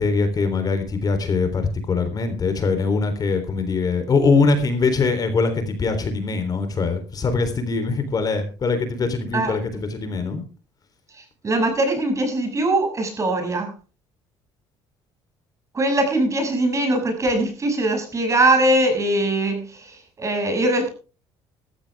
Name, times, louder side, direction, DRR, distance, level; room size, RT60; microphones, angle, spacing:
voice 1, 0.0-10.4, left 4 dB, 40° left, 8 dB, 3.7 m, -22 dB
voice 2, 11.4-13.7 15.7-20.9, right 1 dB, 30° right, 5 dB, 6.8 m, -21 dB
15.5 x 14.5 x 3.6 m, 0.35 s
cardioid pair, 100°, 10 cm